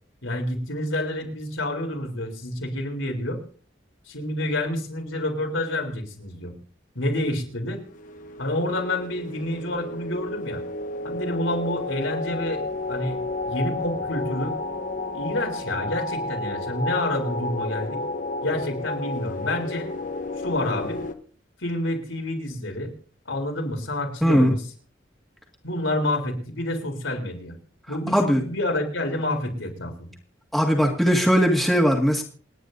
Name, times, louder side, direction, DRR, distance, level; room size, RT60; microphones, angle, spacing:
voice 1, 0.2-3.4 4.1-6.5 7.0-7.8 8.4-10.6 11.0-12.6 12.9-13.2 13.5-14.6 15.1-18.0 18.4-19.9 20.4-21.0 21.6-22.9 23.3-24.7 25.6-27.5 27.9-30.1, left 1 dB, 80° left, 1 dB, 3.8 m, -28 dB
sound 1, 7.7-21.1, left 2 dB, 40° left, 1.0 m, -31 dB
voice 2, 24.2-24.5 28.1-28.4 30.5-32.2, equal, ahead, 0 dB, 1.9 m, -19 dB
28.5 x 9.8 x 2.7 m, 0.42 s
head